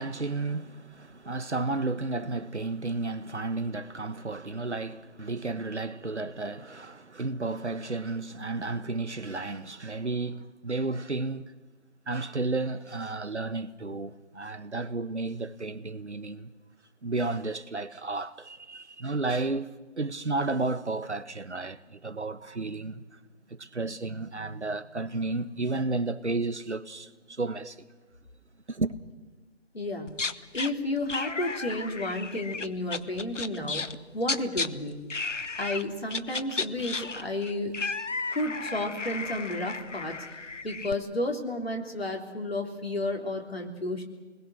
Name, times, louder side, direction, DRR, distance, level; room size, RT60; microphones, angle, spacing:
voice 1, 0.0-11.5 12.1-16.5 17.0-19.7 20.0-23.2 23.5-27.8 28.7-28.9, right 3 dB, 70° right, 1.4 m, -32 dB
voice 2, 29.7-30.1 30.5-33.8 34.1-35.0 35.6-37.7 38.4-40.1 40.6-44.0, left 1 dB, 55° left, 3.4 m, -32 dB
sound 1, 30.1-30.7 31.1-34.0 34.2-34.7 35.1-35.8 36.1-40.9, left 4 dB, 80° left, 1.1 m, -34 dB
27.0 x 20.5 x 6.5 m
figure-of-eight pair, 175°, 36 cm